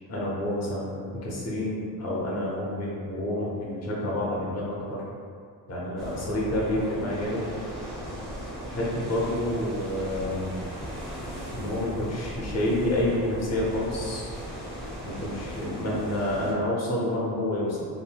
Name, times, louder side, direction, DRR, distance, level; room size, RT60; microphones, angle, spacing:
voice 1, 0.1-5.0 5.7-7.5 8.6-10.5 11.5-14.3 15.0-17.8, left 1 dB, 40° left, -5 dB, 0.8 m, -29 dB
sound 1, 6.0-16.5, equal, ahead, 0.7 m, -37 dB
3.7 x 2.1 x 2.3 m, 2.3 s
cardioid pair, 100°, 41 cm